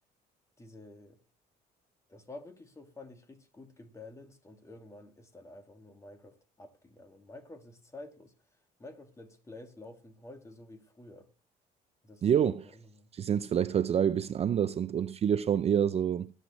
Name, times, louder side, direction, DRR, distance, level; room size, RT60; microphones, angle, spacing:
voice 1, 0.6-1.2 2.1-8.3 8.8-11.3 12.0-13.1, left 2 dB, 15° left, 1.9 m, -50 dB
voice 2, 12.2-12.7 13.1-16.3, right 9 dB, 40° right, 0.4 m, -27 dB
20.5 x 8.2 x 3.0 m
cardioid pair, 110°, 17 cm